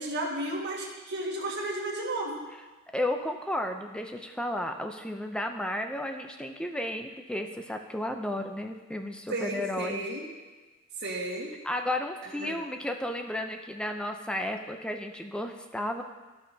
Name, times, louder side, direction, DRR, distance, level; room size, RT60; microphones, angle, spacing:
voice 1, 0.0-2.4 9.3-10.3 11.0-11.5 12.2-12.5, right 2 dB, 55° right, -3 dB, 1.7 m, -33 dB
voice 2, 2.9-10.0 11.6-16.0, left 1 dB, 5° left, 4 dB, 0.5 m, -33 dB
14.0 x 5.7 x 2.8 m, 1.3 s
head